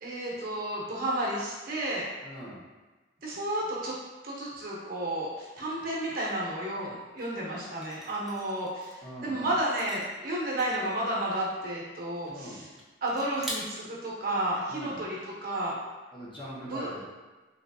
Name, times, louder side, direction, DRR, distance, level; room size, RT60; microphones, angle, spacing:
voice 1, 0.0-2.1 3.2-3.9 4.2-12.7 13.0-15.8 16.7-17.0, right 1 dB, 50° right, -5 dB, 0.8 m, -32 dB
voice 2, 2.2-2.6 9.0-9.5 12.2-12.6 14.7-15.0 16.1-17.0, equal, 25° left, -7 dB, 0.8 m, -42 dB
sound 1, 7.2-7.3 7.8-9.0 9.6-11.1 11.4-11.6 11.9-12.4 12.8-12.9 13.1-13.5, right 1 dB, ahead, 0.5 m, -45 dB
3.3 x 3.1 x 2.7 m, 1.2 s
head